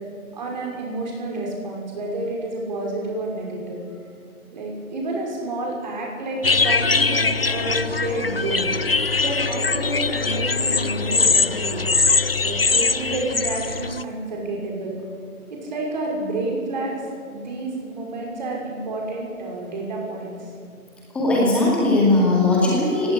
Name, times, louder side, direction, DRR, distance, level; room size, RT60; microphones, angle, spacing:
voice 1, 0.3-3.8 4.5-8.7 9.2-11.8 12.4-15.0 15.5-20.5, right 2 dB, 30° right, -1 dB, 5.8 m, -29 dB
sound 1, 6.4-14.0, left 4 dB, 45° left, 0.5 m, -21 dB
voice 2, 21.1-23.1, left 2 dB, 5° left, -5 dB, 2.2 m, -18 dB
17.5 x 17.0 x 10.0 m, 2.3 s
hypercardioid pair, 170°, 44 cm